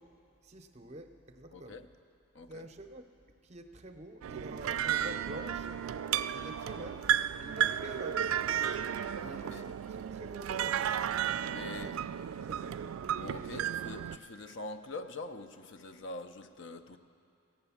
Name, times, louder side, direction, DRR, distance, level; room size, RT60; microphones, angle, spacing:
voice 1, 0.4-1.8 2.5-3.0 3.4-5.9 6.3-7.1 7.4-8.6 9.2-11.0 11.4-12.0 12.4-12.8, right 1 dB, 35° right, 7 dB, 0.6 m, -48 dB
voice 2, 1.5-1.9 2.3-2.7 6.8-6.9 9.1-9.7 11.5-11.9 13.2-17.0, left 2 dB, 60° left, 8 dB, 0.5 m, -44 dB
sound 1, 4.2-14.2, right 9 dB, 85° right, 0.3 m, -33 dB
15.5 x 8.9 x 7.1 m, 2.6 s
head